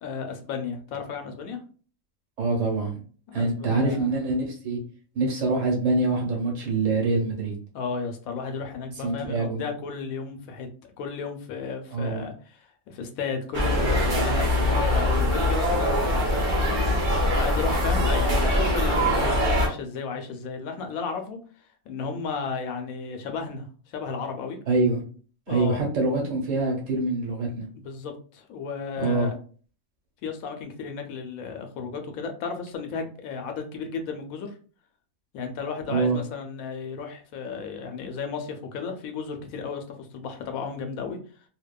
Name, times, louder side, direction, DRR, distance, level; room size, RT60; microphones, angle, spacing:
voice 1, 0.0-1.6 3.3-4.1 7.7-10.7 11.0-21.4 21.9-24.6 25.5-25.8 27.7-29.3 30.2-34.5 35.3-41.2, left 5 dB, 80° left, 5 dB, 1.0 m, -34 dB
voice 2, 2.4-3.0 3.3-4.8 5.1-7.5 9.0-9.6 11.9-12.2 24.7-25.0 25.5-27.7 29.0-29.3 35.9-36.2, right 3 dB, 65° right, -1 dB, 1.3 m, -25 dB
sound 1, 13.5-19.7, left 1 dB, 45° right, 0.8 m, -23 dB
2.8 x 2.1 x 2.2 m, 0.40 s
omnidirectional pair, 1.5 m